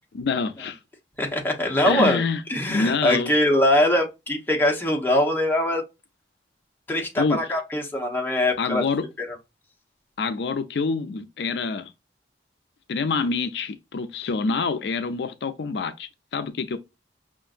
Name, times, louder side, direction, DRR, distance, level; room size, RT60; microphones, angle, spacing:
voice 1, 0.1-0.8 1.8-2.4 2.7-3.3 7.2-7.4 8.6-9.0 10.2-11.9 12.9-16.8, left 4 dB, 75° left, 0.4 m, -26 dB
voice 2, 1.2-2.2 2.5-5.8 6.9-8.8 9.2-9.3, left 1 dB, 10° left, 0.9 m, -22 dB
5.5 x 2.5 x 2.5 m
head